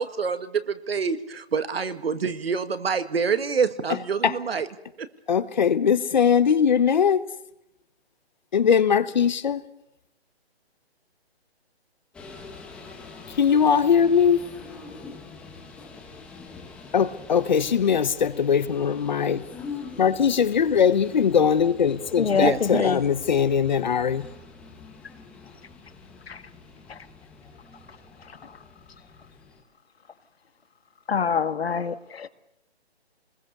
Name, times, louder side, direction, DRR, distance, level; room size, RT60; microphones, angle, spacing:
voice 1, 0.0-4.7 5.0-5.1 22.3-23.0, right 5 dB, 65° right, 1.9 m, -26 dB
voice 2, 5.3-7.2 8.5-9.6 13.4-14.5 16.9-19.4 20.0-24.3, left 7 dB, 45° left, 1.1 m, -21 dB
sound 1, 12.1-29.6, left 4 dB, 5° left, 1.0 m, -44 dB
voice 3, 22.2-23.0 26.3-26.4 26.9-27.1 28.2-28.6 31.1-32.3, left 6 dB, 70° left, 1.8 m, -26 dB
24.0 x 21.0 x 6.8 m
hypercardioid pair, 165°, 32 cm